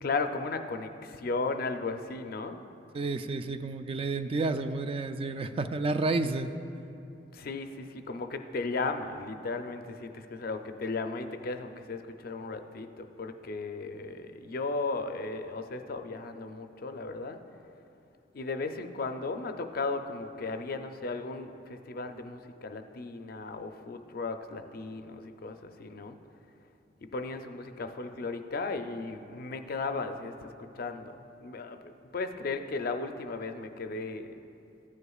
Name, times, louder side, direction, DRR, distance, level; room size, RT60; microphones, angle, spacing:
voice 1, 0.0-2.6 7.3-17.4 18.3-26.2 27.0-34.4, left 3 dB, 55° left, 7 dB, 0.5 m, -36 dB
voice 2, 2.9-6.5, right 3 dB, 30° right, 9 dB, 0.3 m, -30 dB
15.0 x 9.7 x 2.4 m, 2.8 s
head